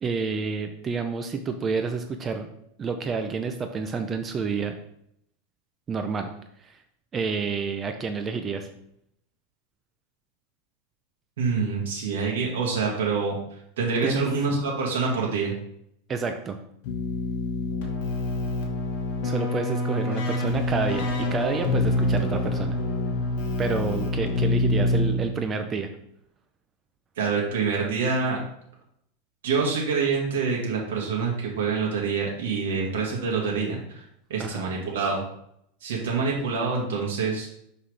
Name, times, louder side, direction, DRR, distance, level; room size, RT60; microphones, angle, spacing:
voice 1, 0.0-2.5 2.8-4.8 5.9-6.3 6.6-6.8 7.1-8.7 14.0-14.3 16.1-16.6 19.2-22.8 23.6-25.9 34.4-34.7, right 5 dB, 20° right, 7 dB, 0.5 m, -29 dB
voice 2, 11.4-13.4 13.8-15.6 27.2-28.4 29.4-34.0 34.3-35.2 35.8-37.6, right 5 dB, 85° right, -2 dB, 1.6 m, -26 dB
Keyboard (musical), 16.8-25.5, left 2 dB, 60° left, 1.4 m, -26 dB
Brass instrument, 20.5-23.6, left 4 dB, 40° left, 1.5 m, -40 dB
5.7 x 5.7 x 3.3 m, 0.74 s
supercardioid pair, 155°, 0 cm